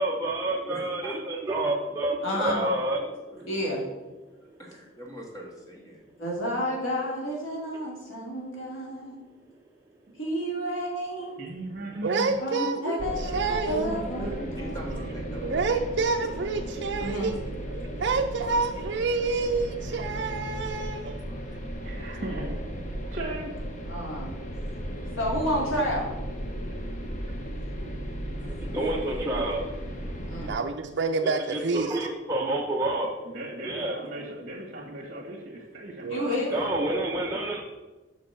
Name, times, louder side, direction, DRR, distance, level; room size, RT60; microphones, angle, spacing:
voice 1, 0.0-3.5 7.7-7.8 21.4-21.7 26.7-26.9 27.3-27.4 28.4-30.6 31.2-33.3 33.6-34.1 36.5-37.6, right 1 dB, 15° right, -3 dB, 0.6 m, -29 dB
voice 2, 0.7-1.2 3.3-3.4 4.3-6.1 14.6-15.9 25.0-25.1 28.4-29.0, right 1 dB, 15° left, -1 dB, 1.8 m, -44 dB
voice 3, 2.2-2.6 3.5-3.8 6.2-9.2 10.1-11.5 12.4-14.8 17.0-17.3 23.9-24.4 25.2-26.1 30.3-30.6 36.1-36.7, equal, 80° left, -3 dB, 2.7 m, -30 dB
voice 4, 11.4-12.5 13.7-15.1 21.8-22.6 23.1-23.6 32.3-32.6 33.2-36.4, right 1 dB, 40° right, -2 dB, 1.5 m, -38 dB
voice 5, 12.0-14.0 15.4-17.4 17.7-21.3 30.4-32.0 36.0-36.3, right 4 dB, 55° right, 2 dB, 0.4 m, -28 dB
sound 1, 13.0-30.5, equal, 40° left, 0.9 m, -35 dB
6.5 x 5.9 x 5.6 m, 1.2 s
head